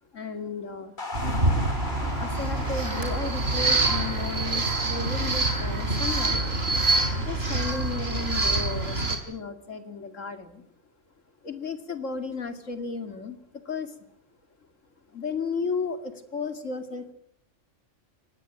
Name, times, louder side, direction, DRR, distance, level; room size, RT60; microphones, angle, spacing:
voice 1, 0.1-1.0 2.1-6.4 7.2-10.6 11.4-14.0 15.1-17.1, left 4 dB, 85° left, 9 dB, 2.7 m, -34 dB
sound 1, 1.0-7.5, left 3 dB, 40° left, 2.7 m, -40 dB
sound 2, 1.1-9.2, right 2 dB, 55° right, 4.1 m, -26 dB
25.0 x 19.5 x 9.2 m, 0.71 s
omnidirectional pair, 1.3 m